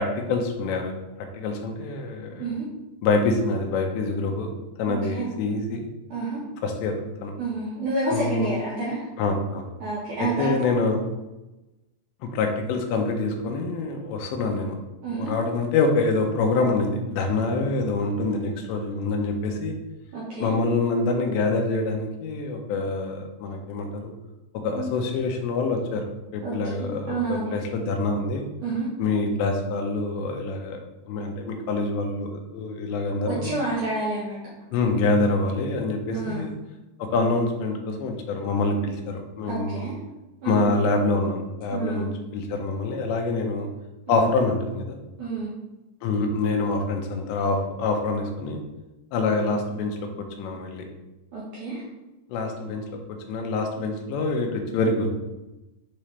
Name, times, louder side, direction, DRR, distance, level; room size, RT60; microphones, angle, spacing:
voice 1, 0.0-2.5 3.0-4.5 4.8-5.9 6.6-7.3 8.1-8.5 9.2-9.7 10.2-11.0 12.3-14.8 15.1-19.8 20.4-24.1 24.6-26.0 26.3-28.5 29.0-30.8 31.1-33.5 34.7-36.5 37.0-39.9 40.4-43.7 44.1-45.0 46.0-48.6 49.1-50.9 52.3-52.8 53.3-55.1, left 3 dB, 85° left, 3 dB, 3.0 m, -26 dB
voice 2, 6.1-6.4 7.4-9.0 9.8-10.7 15.0-15.3 20.1-20.6 24.7-24.9 26.4-27.6 28.6-28.9 33.3-34.4 36.1-36.5 39.5-40.0 40.4-40.7 41.7-42.1 43.3-43.4 44.1-44.2 45.2-45.5 51.3-51.8, right 2 dB, 75° right, -6 dB, 1.9 m, -29 dB
8.5 x 3.8 x 3.2 m, 1.0 s
omnidirectional pair, 5.0 m